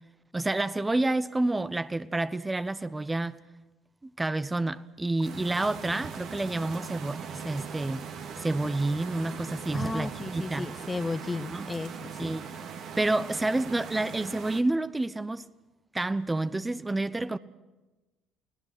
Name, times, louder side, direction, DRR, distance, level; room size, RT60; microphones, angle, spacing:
voice 1, 0.3-3.4 4.2-8.1 8.4-10.7 11.5-11.7 12.2-12.5 13.0-15.4 15.9-17.4, right 2 dB, 15° right, 0.8 m, -29 dB
sound 1, 5.2-14.6, right 6 dB, 55° right, 2.3 m, -40 dB
voice 2, 9.7-12.3, left 3 dB, 20° left, 0.9 m, -34 dB
30.0 x 19.0 x 6.0 m
figure-of-eight pair, 55°, 0 cm